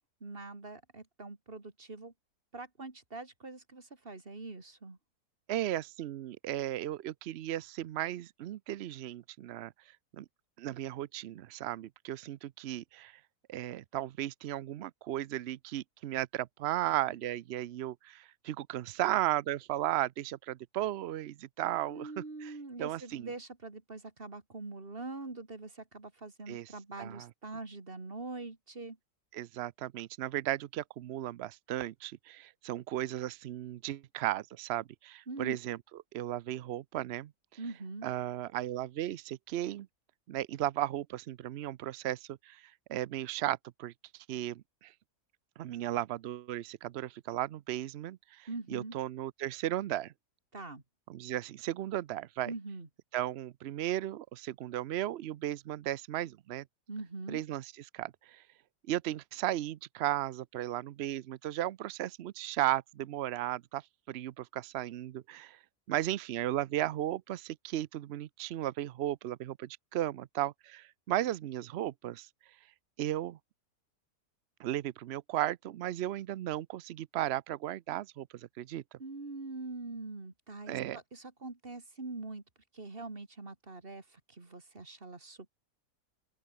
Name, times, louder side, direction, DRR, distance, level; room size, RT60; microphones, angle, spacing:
voice 1, 0.2-2.1 2.5-5.0 21.9-29.0 35.3-35.6 37.6-38.1 48.5-49.0 50.5-50.8 52.5-52.9 56.9-57.4 79.0-82.4 82.7-85.5, right 3 dB, 35° right, 3.0 m, -43 dB
voice 2, 5.5-9.7 10.2-10.3 10.6-13.2 13.5-22.1 22.4-22.5 22.8-23.3 26.5-26.7 27.0-27.3 29.3-35.8 36.1-37.3 38.0-39.9 40.3-44.9 45.6-50.1 51.1-52.5 53.1-56.6 57.3-58.4 58.9-63.8 64.1-65.6 65.9-72.3 73.0-73.4 74.6-78.8 80.7-81.0, right 13 dB, 80° right, 0.6 m, -35 dB
open air
omnidirectional pair, 1.7 m